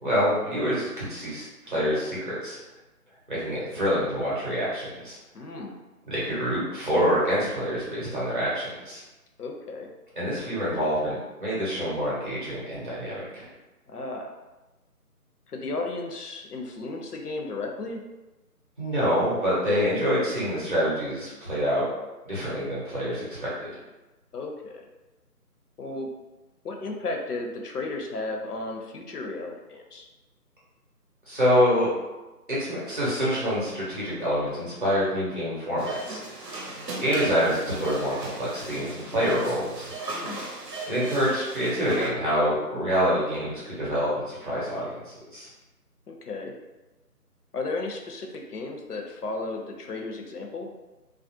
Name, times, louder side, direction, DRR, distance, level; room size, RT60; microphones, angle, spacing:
voice 1, 0.0-2.6 3.3-5.2 6.1-9.0 10.2-13.5 18.8-21.8 22.3-23.7 31.3-31.9 32.5-36.4 37.0-39.9 40.9-45.5, equal, 35° right, -7 dB, 0.7 m, -26 dB
voice 2, 5.3-5.8 9.4-9.9 13.9-14.3 15.5-18.0 24.3-24.9 25.8-26.1 26.6-30.1 40.1-40.5 46.1-46.5 47.5-50.7, left 3 dB, 75° left, 2 dB, 0.6 m, -34 dB
sound 1, 35.8-42.1, right 2 dB, 85° right, 0.8 m, -37 dB
2.4 x 2.1 x 2.7 m, 1.1 s
figure-of-eight pair, 165°, 47 cm